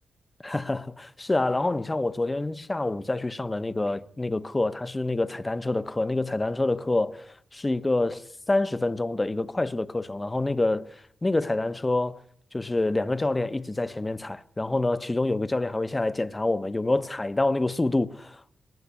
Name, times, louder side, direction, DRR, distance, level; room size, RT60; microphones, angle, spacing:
voice 1, 0.4-12.2 12.5-18.6, left 2 dB, 20° left, 0.9 m, -27 dB
20.5 x 18.5 x 8.3 m
cardioid pair, 95°, 0 cm